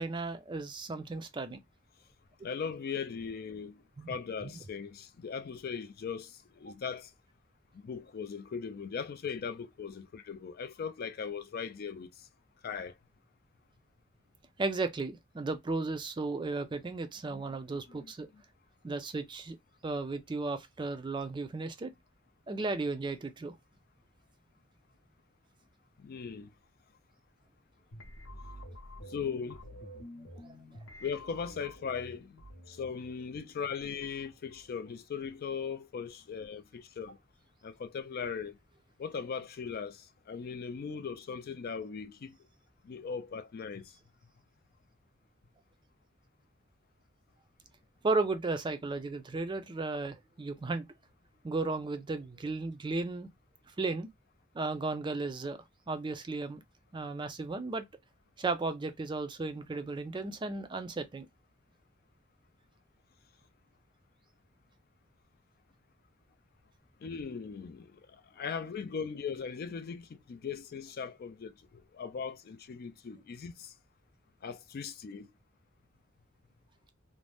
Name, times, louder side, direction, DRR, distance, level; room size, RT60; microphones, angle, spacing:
voice 1, 0.0-1.6 4.0-4.1 4.4-4.6 14.6-18.3 18.8-19.6 19.8-21.9 22.5-23.6 30.4-30.5 48.0-50.9 51.4-53.3 53.8-54.1 54.5-56.6 56.9-57.8 58.4-61.3, right 3 dB, 25° right, 0.4 m, -35 dB
voice 2, 2.4-7.1 7.7-12.3 12.6-12.9 17.3-17.4 17.9-18.4 26.0-26.5 29.1-29.6 31.0-32.3 32.7-37.2 37.6-38.6 39.0-42.4 42.8-44.0 67.0-73.7 74.4-75.3, left 6 dB, 50° left, 0.4 m, -39 dB
sound 1, 27.9-34.8, left 1 dB, 85° left, 0.8 m, -50 dB
2.6 x 2.1 x 3.3 m
head